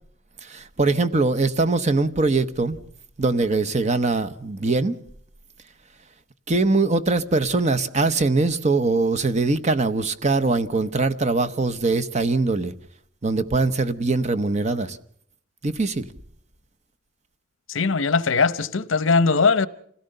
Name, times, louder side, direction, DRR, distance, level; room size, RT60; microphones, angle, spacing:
voice 1, 0.4-2.8 3.2-5.0 6.5-12.7 13.2-15.0 15.6-16.1, right 3 dB, 35° right, 0.8 m, -22 dB
voice 2, 17.7-19.7, left 4 dB, 70° left, 0.9 m, -20 dB
26.5 x 17.5 x 6.6 m
head